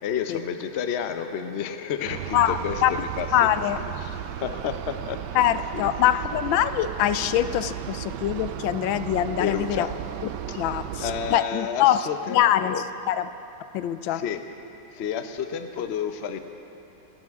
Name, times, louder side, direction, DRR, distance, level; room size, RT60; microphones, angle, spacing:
voice 1, 0.0-3.3 4.0-5.4 5.7-6.1 9.4-9.9 10.5-10.6 11.0-12.8 14.1-14.4 14.9-16.4, left 8 dB, 55° left, 7 dB, 0.7 m, -31 dB
sound 1, 2.1-11.4, right 11 dB, 70° right, 1.1 m, -35 dB
voice 2, 2.3-2.9 3.3-3.8 5.3-9.9 10.5-12.0 12.3-12.8 13.1-13.2 13.7-14.2, left 11 dB, 85° left, 12 dB, 1.4 m, -23 dB
25.5 x 13.5 x 3.6 m, 2.8 s
omnidirectional pair, 2.1 m